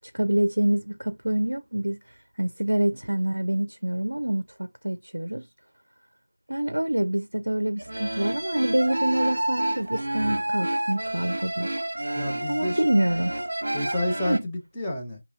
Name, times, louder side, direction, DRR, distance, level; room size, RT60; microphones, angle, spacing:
voice 1, 0.1-2.0 2.4-5.5 6.5-11.8 12.5-13.3 14.3-14.4, right 1 dB, 65° right, 0.4 m, -26 dB
sound 1, 7.8-14.4, right 1 dB, 40° right, 1.0 m, -29 dB
voice 2, 12.2-12.8 13.7-15.2, left 1 dB, 5° left, 0.5 m, -30 dB
5.5 x 2.8 x 2.5 m
figure-of-eight pair, 175°, 0 cm